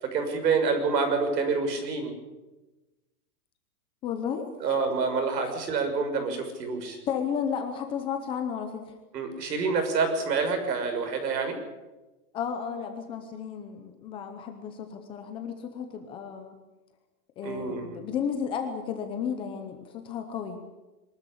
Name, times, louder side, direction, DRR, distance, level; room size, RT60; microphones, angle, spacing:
voice 1, 0.0-2.1 4.6-7.0 9.1-11.6 17.4-18.0, right 4 dB, 80° right, 6 dB, 6.3 m, -27 dB
voice 2, 4.0-4.5 5.4-5.5 7.1-8.9 12.3-16.6 17.4-20.6, left 7 dB, 10° left, 6 dB, 0.7 m, -33 dB
23.0 x 13.5 x 10.0 m, 1.1 s
supercardioid pair, 170°, 49 cm